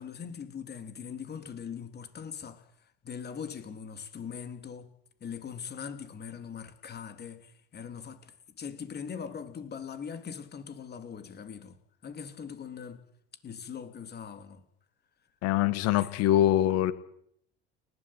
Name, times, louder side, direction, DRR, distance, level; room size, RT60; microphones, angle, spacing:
voice 1, 0.0-4.9 5.2-11.8 12.0-13.0 13.4-14.6 16.0-16.1, left 7 dB, 30° left, 8 dB, 3.6 m, -41 dB
voice 2, 15.4-16.9, left 13 dB, 55° left, 14 dB, 2.1 m, -24 dB
29.5 x 12.5 x 8.9 m, 0.69 s
figure-of-eight pair, 70°, 31 cm